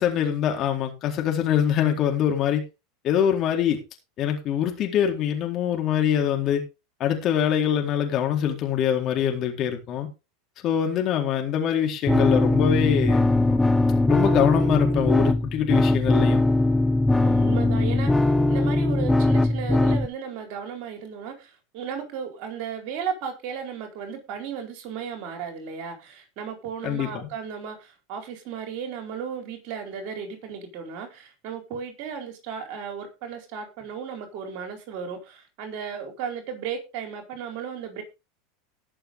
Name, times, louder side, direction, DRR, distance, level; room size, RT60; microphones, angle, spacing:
voice 1, 0.0-2.6 3.0-3.8 4.2-6.6 7.0-10.1 10.6-13.6 14.1-16.4 26.8-27.3, left 9 dB, 45° left, 4.1 m, -24 dB
sound 1, 12.1-20.1, left 2 dB, 10° left, 0.9 m, -20 dB
voice 2, 17.2-38.0, right 7 dB, 55° right, 4.3 m, -35 dB
19.5 x 6.7 x 3.7 m
hypercardioid pair, 85°, 0 cm